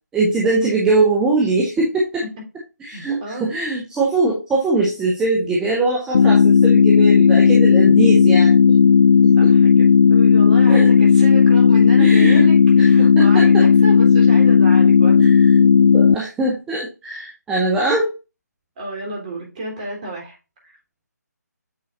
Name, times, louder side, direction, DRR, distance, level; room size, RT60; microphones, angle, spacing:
voice 1, 0.1-2.2 2.8-8.7 9.2-9.5 10.7-10.9 12.0-12.4 12.8-13.6 15.2-18.1, right 2 dB, 5° right, -3 dB, 0.9 m, -21 dB
voice 2, 2.9-3.5 9.4-15.2 18.8-20.3, right 1 dB, 25° right, -2 dB, 3.3 m, -31 dB
sound 1, 6.1-16.2, left 6 dB, 35° left, 0.3 m, -12 dB
8.7 x 5.5 x 2.5 m, 0.30 s
figure-of-eight pair, 155°, 9 cm